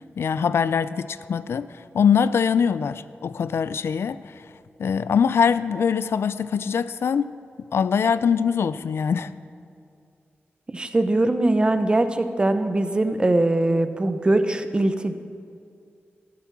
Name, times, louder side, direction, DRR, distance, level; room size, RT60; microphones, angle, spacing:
voice 1, 0.2-1.7 1.9-4.3 4.8-7.3 7.7-9.3, left 6 dB, 80° left, 15 dB, 0.4 m, -22 dB
voice 2, 10.7-15.1, right 2 dB, 25° right, 9 dB, 0.7 m, -21 dB
12.5 x 12.5 x 6.1 m, 2.4 s
wide cardioid pair, 145°, 4 cm